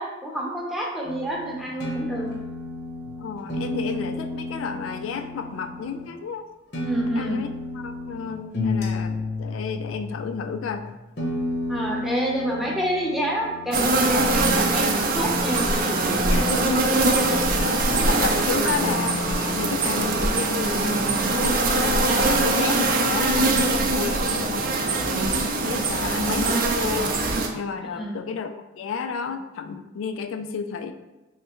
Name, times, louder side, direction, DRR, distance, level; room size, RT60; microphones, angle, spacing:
voice 1, 0.0-2.3 6.8-7.4 11.7-15.7 16.1-16.5 24.2-24.4 25.9-26.4 27.8-28.2, right 1 dB, ahead, -3 dB, 0.6 m, -29 dB
sound 1, 1.0-6.1 6.7-20.6, left 2 dB, 60° left, 0.8 m, -32 dB
voice 2, 3.0-6.5 7.2-7.5 7.7-10.9 16.3-17.3 17.5-21.0 21.3-25.3 25.6-30.9, left 5 dB, 90° left, 8 dB, 0.3 m, -32 dB
sound 2, 13.7-27.5, right 2 dB, 45° right, 0.4 m, -22 dB
3.4 x 3.1 x 3.0 m, 1.1 s
head